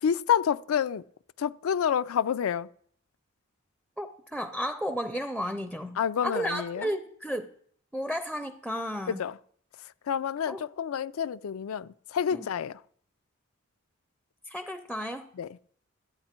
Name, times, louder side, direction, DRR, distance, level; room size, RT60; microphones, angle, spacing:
voice 1, 0.0-1.0 1.4-2.7 6.0-6.9 9.1-9.4 10.1-12.8 15.4-15.5, left 8 dB, 85° left, 0.4 m, -28 dB
voice 2, 4.0-6.0 6.2-7.5 7.9-9.2 10.5-10.6 12.3-12.5 14.5-15.3, equal, ahead, 0.4 m, -33 dB
12.5 x 8.6 x 4.4 m
head